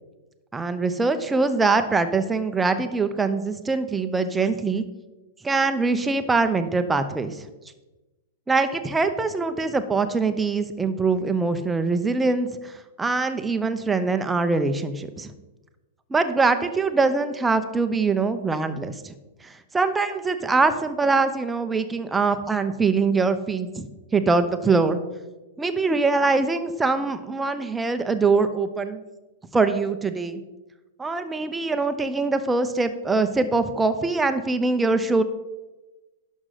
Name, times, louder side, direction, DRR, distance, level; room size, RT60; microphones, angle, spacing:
voice 1, 0.5-4.8 5.4-7.5 8.5-12.7 13.0-15.3 16.1-19.1 19.7-23.9 24.1-25.0 25.6-29.0 29.5-30.4 31.0-35.2, right 3 dB, 10° right, 9 dB, 0.9 m, -23 dB
11.0 x 6.4 x 5.8 m, 1.1 s
figure-of-eight pair, 100°, 0 cm